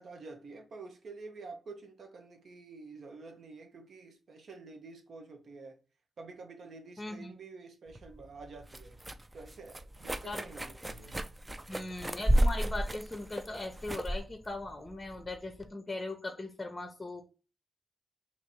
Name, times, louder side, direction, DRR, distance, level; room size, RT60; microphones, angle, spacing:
voice 1, 0.0-5.8 6.2-9.0 9.3-11.1, right 3 dB, 70° right, 0.9 m, -49 dB
voice 2, 7.0-7.3 10.2-10.5 11.7-17.2, left 2 dB, 25° left, 0.7 m, -39 dB
sound 1, 7.9-15.7, right 1 dB, 20° right, 0.4 m, -33 dB
2.9 x 2.6 x 4.3 m
cardioid pair, 60°, 0 cm